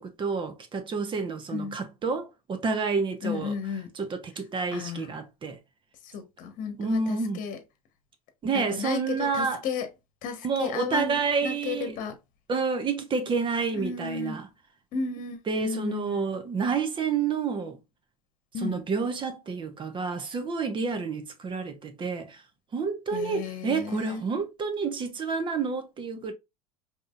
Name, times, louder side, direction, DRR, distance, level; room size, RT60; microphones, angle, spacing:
voice 1, 0.0-3.5 3.9-5.6 6.8-7.4 8.4-9.6 10.4-12.0 12.5-14.5 15.5-17.8 18.6-22.4 22.7-26.3, right 5 dB, 25° right, 0.9 m, -29 dB
voice 2, 3.2-3.9 4.7-5.1 6.0-7.6 8.7-9.9 10.2-12.2 13.7-14.4 14.9-16.2 18.5-18.8 23.1-24.2, left 6 dB, 45° left, 1.2 m, -33 dB
5.1 x 2.9 x 2.5 m
hypercardioid pair, 85°, 19 cm